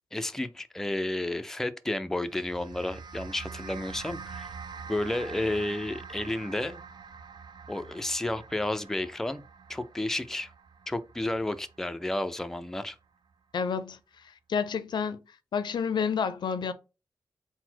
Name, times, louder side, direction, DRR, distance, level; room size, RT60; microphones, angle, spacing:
voice 1, 0.1-4.5 4.9-6.8 7.7-9.4 9.7-10.5 10.9-13.0, left 1 dB, 5° left, 0.3 m, -31 dB
sound 1, 2.2-12.8, right 5 dB, 75° right, 0.4 m, -45 dB
voice 2, 13.5-14.0 14.5-15.2 15.5-16.7, left 6 dB, 75° left, 0.4 m, -29 dB
4.0 x 2.0 x 4.3 m
wide cardioid pair, 85°, 8 cm